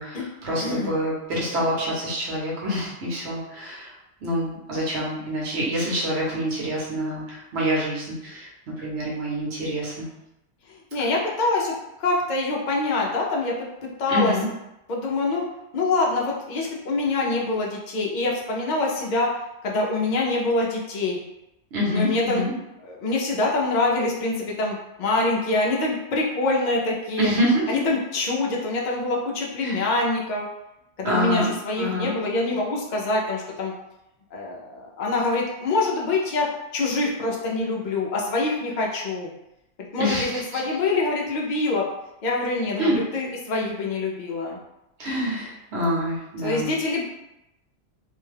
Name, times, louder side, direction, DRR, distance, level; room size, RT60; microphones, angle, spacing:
voice 1, 0.0-3.9 4.2-10.1 14.1-14.5 21.7-22.5 27.2-27.7 29.6-29.8 31.0-31.5 31.8-32.1 40.0-40.6 42.8-43.0 45.0-46.7, equal, 55° right, -5 dB, 1.1 m, -26 dB
voice 2, 0.6-1.0 10.7-13.5 13.8-14.4 14.9-15.4 15.7-19.3 19.6-21.2 21.9-22.4 22.8-27.3 27.7-30.5 31.0-33.7 34.3-36.5 36.7-39.3 39.8-41.9 42.2-44.6 46.4-47.0, left 2 dB, 55° left, -2 dB, 0.5 m, -25 dB
2.7 x 2.2 x 3.2 m, 0.88 s
omnidirectional pair, 1.4 m